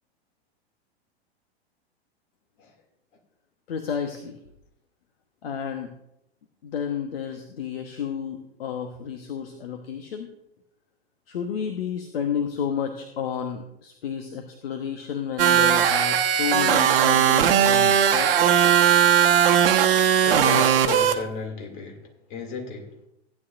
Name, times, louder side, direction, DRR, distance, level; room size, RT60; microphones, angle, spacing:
voice 1, 3.7-4.4 5.4-5.9 6.6-10.3 11.3-18.3, left 8 dB, 65° left, 1.2 m, -31 dB
sound 1, 15.4-21.1, right 9 dB, 60° right, 1.0 m, -18 dB
voice 2, 20.2-23.0, left 5 dB, 50° left, 2.6 m, -33 dB
15.5 x 9.7 x 2.6 m
figure-of-eight pair, 100°, 32 cm